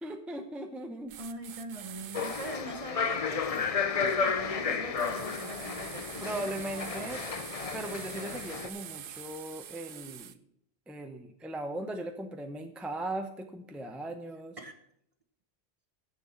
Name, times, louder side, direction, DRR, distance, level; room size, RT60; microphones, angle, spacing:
voice 1, 0.0-1.2 6.2-7.2 7.7-10.3 10.9-14.6, right 1 dB, ahead, 5 dB, 0.7 m, -38 dB
sound 1, 1.1-2.6 5.0-10.4, right 10 dB, 60° right, 0.7 m, -45 dB
voice 2, 1.2-6.5 14.6-14.7, right 2 dB, 35° right, 7 dB, 1.0 m, -42 dB
sound 2, 2.1-8.7, left 5 dB, 40° left, 0.6 m, -32 dB
7.4 x 7.0 x 7.3 m, 0.70 s
omnidirectional pair, 1.1 m